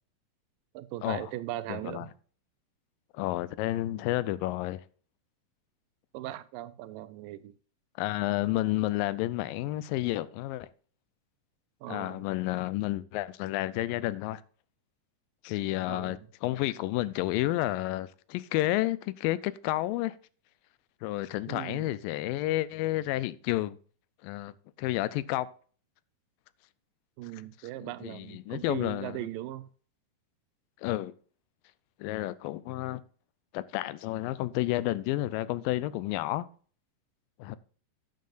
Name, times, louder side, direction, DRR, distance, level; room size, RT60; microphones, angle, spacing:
voice 1, 0.7-2.1 6.1-7.5 11.8-12.2 15.9-16.3 21.5-21.9 27.2-29.7, right 14 dB, 85° right, 2.3 m, -39 dB
voice 2, 1.7-2.1 3.1-4.8 8.0-10.7 11.9-14.4 15.4-20.2 21.0-23.8 24.2-24.5 24.8-25.5 27.8-29.2 30.8-31.1 32.0-33.0 33.5-36.5 37.4-37.6, left 16 dB, 85° left, 2.3 m, -31 dB
12.0 x 9.2 x 2.5 m
omnidirectional pair, 3.9 m